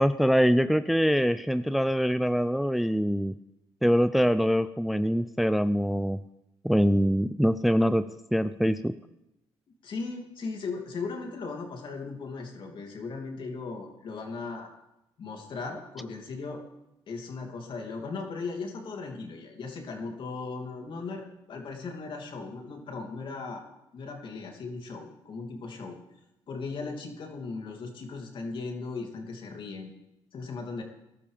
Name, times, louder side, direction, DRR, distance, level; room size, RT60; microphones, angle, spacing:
voice 1, 0.0-3.3 3.8-6.2 6.6-9.0, equal, ahead, 12 dB, 0.4 m, -24 dB
voice 2, 9.8-14.7 15.2-16.6 17.1-23.6 23.9-26.0 26.5-29.9 30.3-30.8, left 4 dB, 55° left, 2 dB, 3.0 m, -37 dB
20.0 x 12.0 x 3.5 m, 0.91 s
supercardioid pair, 80°, 10 cm